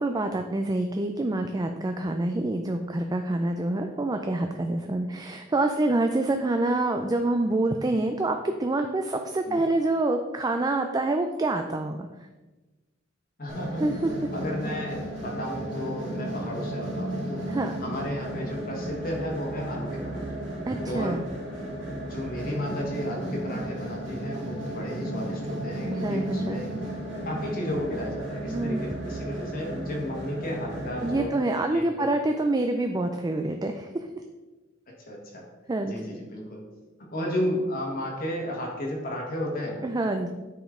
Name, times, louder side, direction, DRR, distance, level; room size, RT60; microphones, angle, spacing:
voice 1, 0.0-12.1 13.8-14.1 17.5-17.8 20.7-21.3 25.9-26.8 28.5-28.8 31.0-34.1 35.7-36.0 39.8-40.3, right 2 dB, 20° right, 5 dB, 0.4 m, -27 dB
voice 2, 13.4-13.8 14.3-17.4 17.8-20.2 20.8-21.2 22.1-26.7 27.2-31.3 31.7-32.1 35.1-35.5 35.8-36.6 37.1-39.8, equal, 45° left, -2 dB, 1.5 m, -33 dB
sound 1, 13.5-31.3, right 1 dB, 80° right, 2.3 m, -34 dB
8.6 x 5.2 x 3.7 m, 1.2 s
head